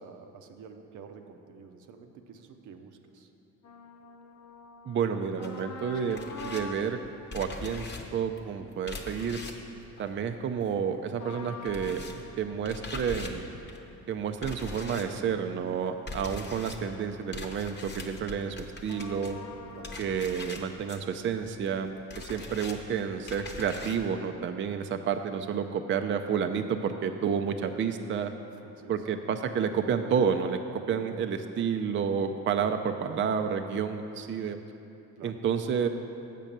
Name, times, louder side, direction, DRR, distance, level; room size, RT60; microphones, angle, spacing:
voice 1, 0.0-3.3 19.7-19.9 28.6-29.0 35.2-35.3, right 5 dB, 75° right, 5 dB, 0.7 m, -49 dB
sound 1, 3.6-9.5 11.2-16.5 16.9-17.0 18.9-20.2, left 4 dB, 70° left, 0.8 m, -47 dB
voice 2, 4.9-7.0 7.3-9.4 10.0-13.5 14.1-19.4 20.0-28.3 28.9-34.6 35.2-35.9, right 7 dB, 40° right, 6 dB, 0.4 m, -30 dB
sound 2, 5.4-11.0 11.2-24.1, left 3 dB, 35° left, 0.9 m, -43 dB
7.4 x 5.3 x 7.3 m, 2.8 s
cardioid pair, 90°, 30 cm